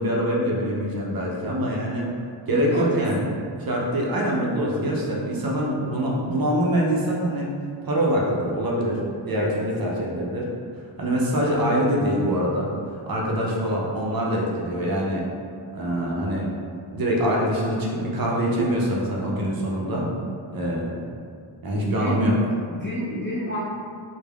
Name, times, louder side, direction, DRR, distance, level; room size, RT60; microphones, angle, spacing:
voice 1, 0.0-2.1 2.5-3.2 3.7-7.5 7.8-10.5 11.0-12.7 13.1-15.3 15.7-16.5 16.9-20.1 20.5-21.0 21.6-22.3, equal, 50° right, -3 dB, 0.5 m, -24 dB
voice 2, 2.5-3.1 9.3-9.6 10.0-10.1 21.7-23.6, equal, 25° left, -7 dB, 0.4 m, -30 dB
3.3 x 2.1 x 2.2 m, 2.2 s
wide cardioid pair, 105°, 48 cm